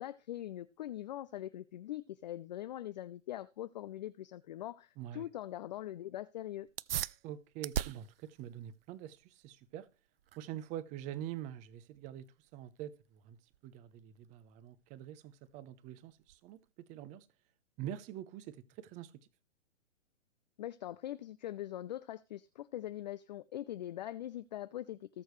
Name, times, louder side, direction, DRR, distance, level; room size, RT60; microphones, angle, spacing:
voice 1, 0.0-6.7 20.6-25.2, left 13 dB, 35° left, 0.5 m, -42 dB
voice 2, 5.0-5.3 7.2-9.9 10.4-13.4 13.6-17.3 17.8-19.1, right 11 dB, 20° right, 0.8 m, -45 dB
sound 1, 6.6-16.7, right 11 dB, 50° right, 0.5 m, -44 dB
18.5 x 6.4 x 3.2 m
hypercardioid pair, 135°, 39 cm